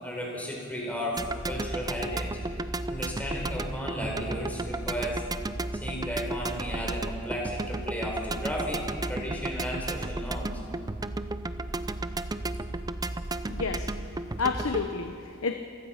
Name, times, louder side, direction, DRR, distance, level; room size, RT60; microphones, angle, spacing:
voice 1, 0.0-2.4 2.9-5.2 5.7-10.6, equal, 5° left, -2 dB, 4.5 m, -34 dB
sound 1, 1.2-14.9, right 2 dB, 20° right, 0.6 m, -33 dB
voice 2, 13.5-15.5, left 4 dB, 80° left, 6 dB, 0.9 m, -31 dB
27.0 x 16.5 x 5.8 m, 2.4 s
head